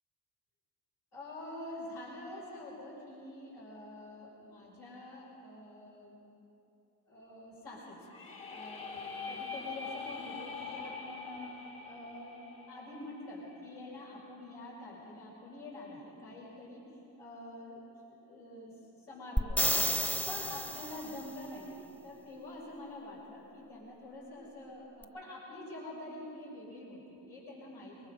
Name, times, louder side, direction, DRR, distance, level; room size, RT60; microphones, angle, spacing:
voice 1, 1.1-6.2 7.1-11.6 11.8-12.4 12.7-17.8 18.2-19.8 20.2-28.1, left 1 dB, 85° left, -5 dB, 5.8 m, -46 dB
sound 1, 8.0-13.9, left 4 dB, 60° left, 3.0 m, -44 dB
sound 2, 19.4-21.2 25.0-25.1, equal, 5° left, 0.7 m, -31 dB
23.0 x 22.0 x 5.3 m, 2.9 s
cardioid pair, 80°, 38 cm